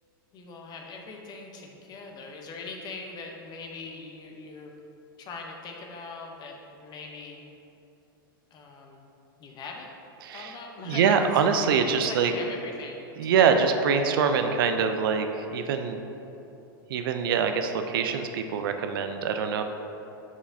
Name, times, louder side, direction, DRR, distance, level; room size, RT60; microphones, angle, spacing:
voice 1, 0.3-4.7 5.2-7.4 8.5-9.1 9.4-9.9 10.3-11.3 12.0-13.6, left 3 dB, 35° left, 1 dB, 0.8 m, -41 dB
voice 2, 10.2-10.5 10.9-12.3 13.2-16.0 16.9-19.6, right 6 dB, 70° right, 7 dB, 0.5 m, -24 dB
6.2 x 5.8 x 2.7 m, 2.9 s
hypercardioid pair, 110°, 12 cm